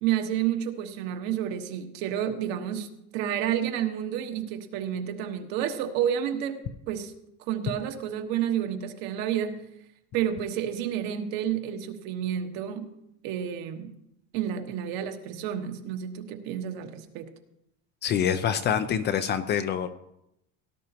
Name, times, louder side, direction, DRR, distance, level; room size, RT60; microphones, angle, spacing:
voice 1, 0.0-2.9 3.1-7.1 7.5-9.6 10.1-12.9 13.2-13.9 14.3-17.3, right 10 dB, 65° right, 5 dB, 1.5 m, -30 dB
voice 2, 18.0-19.9, left 8 dB, 30° left, 10 dB, 0.4 m, -26 dB
18.0 x 11.5 x 2.9 m, 0.81 s
cardioid pair, 155°, 39 cm